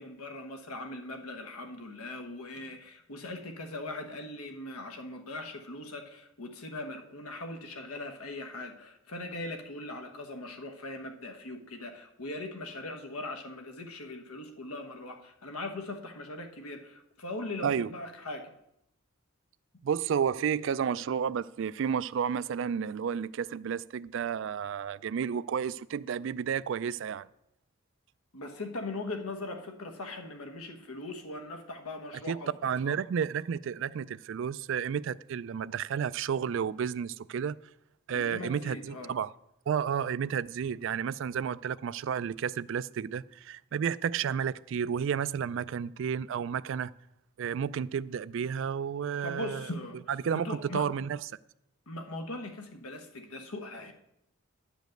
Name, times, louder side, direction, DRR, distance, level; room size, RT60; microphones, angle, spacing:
voice 1, 0.0-18.5 28.3-32.5 32.8-33.0 38.1-39.1 49.2-50.0 50.3-50.9 51.9-53.9, left 2 dB, 90° left, 1.3 m, -40 dB
voice 2, 19.8-27.3 32.3-37.6 38.1-39.3 39.7-46.9 47.4-49.7 50.1-51.2, right 7 dB, 60° right, 0.3 m, -31 dB
10.5 x 5.1 x 7.7 m
head